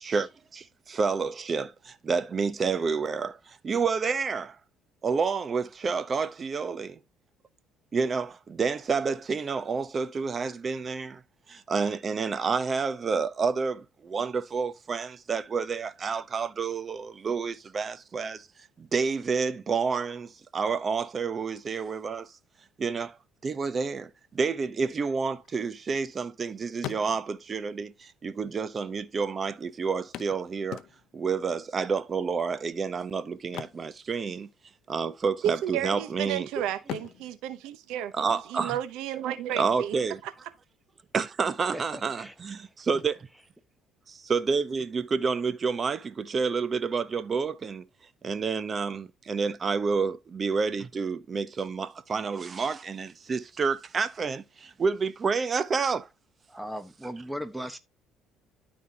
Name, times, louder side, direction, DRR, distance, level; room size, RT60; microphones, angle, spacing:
voice 1, 0.0-4.6 5.0-7.0 7.9-11.2 11.5-18.5 18.8-22.3 22.8-23.2 23.4-30.8 31.1-34.5 34.9-36.5 38.1-38.8 39.5-40.2 41.1-43.3 44.1-47.9 48.2-56.1, right 5 dB, 35° right, 0.8 m, -29 dB
sound 1, 25.4-26.4 26.7-27.6 28.5-28.6 28.8-28.9 30.1-31.3 33.4-34.7 34.9-35.2 35.7-36.3 36.8-38.6 40.5-40.6 41.1-41.2, left 12 dB, 65° left, 0.7 m, -42 dB
voice 2, 35.4-38.1 38.5-39.9 40.2-40.3, right 11 dB, 80° right, 0.8 m, -32 dB
voice 3, 41.7-42.4 56.5-57.8, equal, 5° right, 1.2 m, -37 dB
13.0 x 4.3 x 2.9 m
cardioid pair, 105°, 0 cm